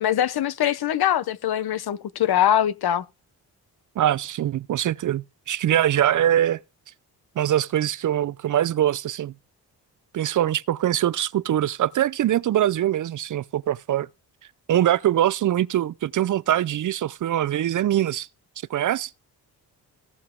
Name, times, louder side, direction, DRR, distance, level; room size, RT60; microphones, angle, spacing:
voice 1, 0.0-3.0, left 10 dB, 65° left, 0.9 m, -22 dB
voice 2, 4.0-6.6 7.4-9.3 10.1-14.1 14.7-18.3 18.7-19.1, right 11 dB, 50° right, 0.5 m, -23 dB
16.5 x 5.6 x 3.7 m
supercardioid pair, 55°, 40 cm